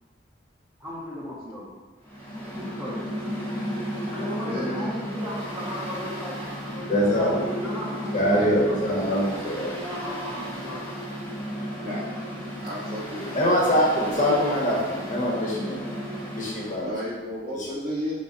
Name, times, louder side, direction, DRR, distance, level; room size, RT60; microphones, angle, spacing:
voice 1, 0.8-1.8 2.6-3.2 4.1-6.5 6.7-9.0 9.3-11.0, equal, 10° right, -8 dB, 0.6 m, -36 dB
Mechanical fan, 2.0-16.9, equal, 10° left, 0.8 m, -34 dB
voice 2, 4.4-5.0 11.8-12.1 12.6-13.4 14.1-14.3 16.9-18.1, equal, 50° right, -4 dB, 0.9 m, -33 dB
voice 3, 6.9-7.4 8.1-9.7 13.3-15.9 16.3-16.9 17.5-17.7, equal, 40° left, -3 dB, 0.8 m, -23 dB
5.3 x 2.0 x 3.8 m, 1.3 s
head